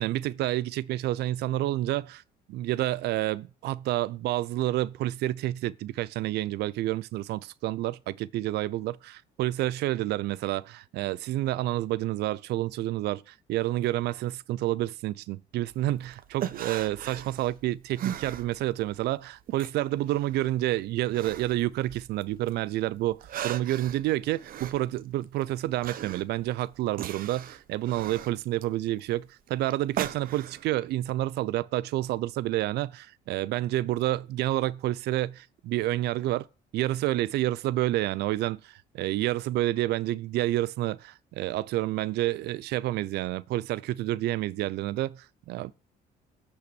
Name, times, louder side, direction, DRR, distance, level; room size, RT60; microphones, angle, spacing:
voice 1, 0.0-2.2 2.5-36.5 36.7-45.7, right 15 dB, 80° right, 0.6 m, -29 dB
sound 1, 15.7-19.0 19.3-22.6 23.0-30.7, right 10 dB, 55° right, 1.1 m, -38 dB
16.5 x 5.8 x 6.9 m
cardioid pair, 110°, 17 cm